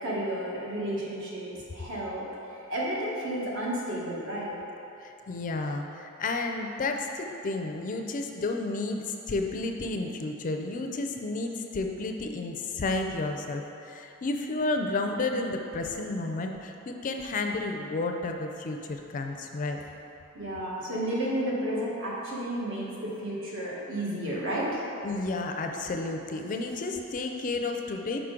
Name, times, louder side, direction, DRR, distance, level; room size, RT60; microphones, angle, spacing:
voice 1, 0.0-4.5 20.3-24.9, right 1 dB, 65° right, -5 dB, 1.2 m, -32 dB
voice 2, 5.0-19.8 25.0-28.2, left 3 dB, 40° left, 4 dB, 0.4 m, -31 dB
5.8 x 5.0 x 3.7 m, 2.9 s
head